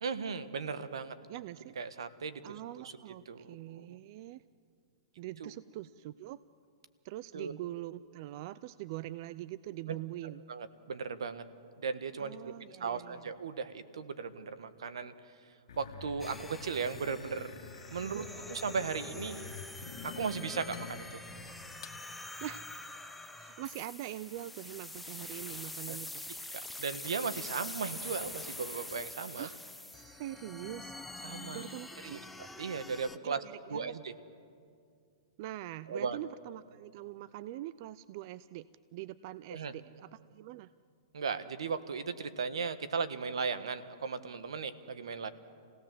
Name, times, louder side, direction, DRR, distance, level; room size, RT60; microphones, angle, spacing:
voice 1, 0.0-1.1 1.8-2.4 3.3-4.0 5.4-5.5 7.3-7.5 9.9-10.0 10.5-11.4 11.8-12.5 12.8-15.1 15.8-17.5 17.9-19.5 20.0-21.2 25.9-26.0 26.8-29.5 31.2-31.7 32.0-32.2 32.6-33.4 33.7-34.1 35.9-36.2 39.5-39.7 41.1-45.3, right 5 dB, 85° right, 12 dB, 1.4 m, -36 dB
voice 2, 1.3-1.7 2.4-4.4 5.2-6.4 7.0-10.4 12.2-13.3 18.0-18.3 22.4-22.6 23.4-26.2 29.3-29.6 29.9-31.0 31.5-32.3 33.2-34.0 35.4-40.7, right 15 dB, 45° right, 17 dB, 0.5 m, -43 dB
sound 1, 15.7-22.0, left 6 dB, 70° left, 1.7 m, -48 dB
sound 2, 16.2-33.2, left 2 dB, 5° left, 0.7 m, -45 dB
28.0 x 17.5 x 7.6 m, 2.3 s
hypercardioid pair, 140°, 3 cm